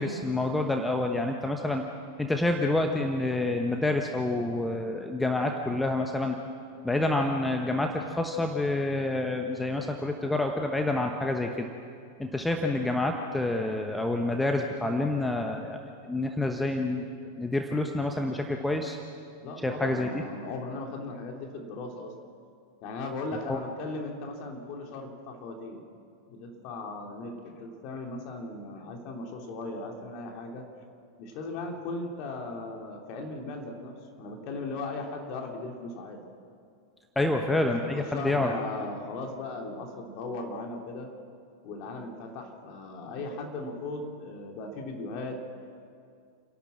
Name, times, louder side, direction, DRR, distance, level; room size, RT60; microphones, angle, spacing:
voice 1, 0.0-1.8 2.2-6.4 6.8-11.7 12.2-15.8 16.1-17.1 17.4-19.0 19.6-20.2 23.5-23.6 37.1-38.5, left 2 dB, 5° left, 3 dB, 1.2 m, -28 dB
voice 2, 19.4-22.1 22.8-25.8 26.3-30.6 31.2-33.9 34.2-36.2 37.2-41.1 41.6-45.4, left 2 dB, 40° left, 1 dB, 3.1 m, -37 dB
29.5 x 12.0 x 7.6 m, 2.3 s
figure-of-eight pair, 90°, 0 cm